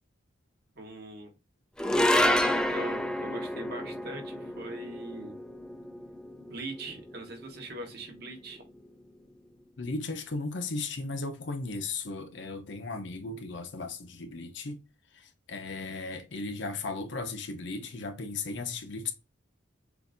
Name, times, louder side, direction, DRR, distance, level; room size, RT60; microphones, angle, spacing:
voice 1, 0.8-1.3 2.2-5.4 6.4-8.6, right 2 dB, 55° right, 1.3 m, -41 dB
sound 1, 1.8-8.3, left 1 dB, 5° left, 0.3 m, -29 dB
voice 2, 9.8-14.8 15.1-19.1, left 3 dB, 65° left, 0.8 m, -36 dB
6.8 x 2.6 x 2.6 m
head